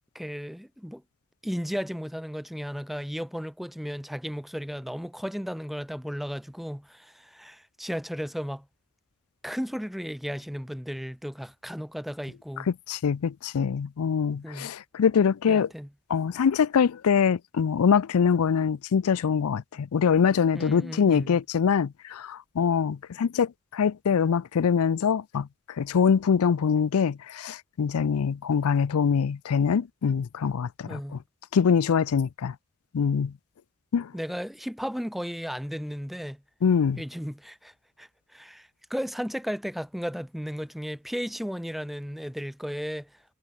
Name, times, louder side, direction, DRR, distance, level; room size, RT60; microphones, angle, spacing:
voice 1, 0.1-1.0 1.4-8.6 9.4-12.7 14.4-14.7 15.5-15.9 20.5-21.4 30.9-31.2 34.1-36.4 37.0-43.1, equal, ahead, 0.7 m, -35 dB
voice 2, 12.7-15.7 16.1-25.5 25.8-31.0 31.5-32.5 32.9-33.3 33.9-34.1 36.6-37.0, left 6 dB, 80° left, 0.4 m, -24 dB
head